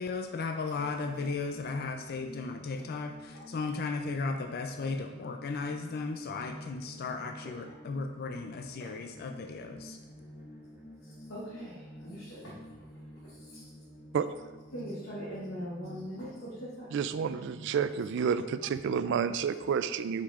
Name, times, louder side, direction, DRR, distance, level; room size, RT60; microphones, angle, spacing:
voice 1, 0.0-10.0, left 4 dB, 50° left, 5 dB, 0.4 m, -35 dB
sound 1, 0.7-19.7, equal, 15° right, 1.0 m, -50 dB
voice 2, 7.4-7.7 8.8-8.9 11.0-12.9 13.2-13.6 14.7-16.9, equal, 85° left, -8 dB, 1.6 m, -42 dB
voice 3, 16.9-20.2, right 6 dB, 60° right, 13 dB, 0.3 m, -30 dB
8.4 x 5.2 x 2.5 m, 1.2 s
head